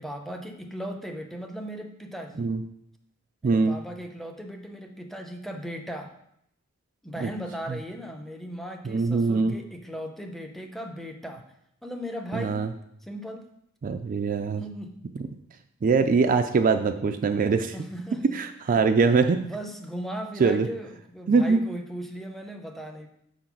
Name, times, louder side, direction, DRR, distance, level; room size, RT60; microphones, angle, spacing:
voice 1, 0.0-2.5 3.4-6.1 7.0-11.4 11.8-12.6 13.0-13.5 14.6-14.9 17.7-18.2 18.7-23.1, equal, ahead, 4 dB, 0.7 m, -37 dB
voice 2, 3.4-3.8 7.2-7.3 8.9-9.5 12.3-12.7 13.8-14.6 15.8-17.7 18.3-19.4 20.4-20.7 21.3-21.6, right 4 dB, 40° right, 8 dB, 0.4 m, -22 dB
6.4 x 3.9 x 5.9 m, 0.74 s
head